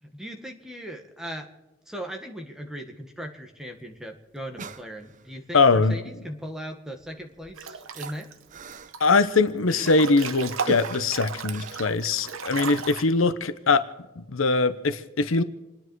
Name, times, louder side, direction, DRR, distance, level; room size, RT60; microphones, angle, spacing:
voice 1, 0.0-1.5 1.9-8.3, equal, 5° right, 3 dB, 1.7 m, -38 dB
sound 1, 3.6-3.7 3.9-4.0 4.4-5.4 6.5-6.7 7.0-10.2 10.7-12.5 12.9-13.0, right 4 dB, 40° right, 0.7 m, -41 dB
voice 2, 5.5-6.0 9.0-13.8 14.2-15.4, left 3 dB, 80° left, 12 dB, 0.9 m, -22 dB
Breathing / Bathtub (filling or washing) / Splash splatter, 7.6-8.3 8.7-9.4 9.7-13.0, right 5 dB, 85° right, 1.1 m, -35 dB
28.5 x 10.0 x 4.7 m, 1.1 s
head